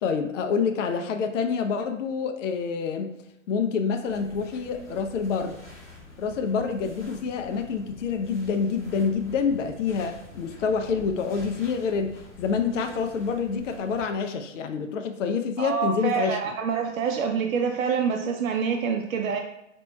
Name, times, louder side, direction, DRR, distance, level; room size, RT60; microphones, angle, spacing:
voice 1, 0.0-3.1 3.5-5.6 6.2-16.4, left 5 dB, 65° left, 6 dB, 0.6 m, -27 dB
sound 1, 4.0-14.0, left 1 dB, 5° right, 0.3 m, -47 dB
voice 2, 15.6-19.4, right 6 dB, 85° right, 4 dB, 0.6 m, -26 dB
5.1 x 3.0 x 2.3 m, 0.87 s
hypercardioid pair, 145°, 40 cm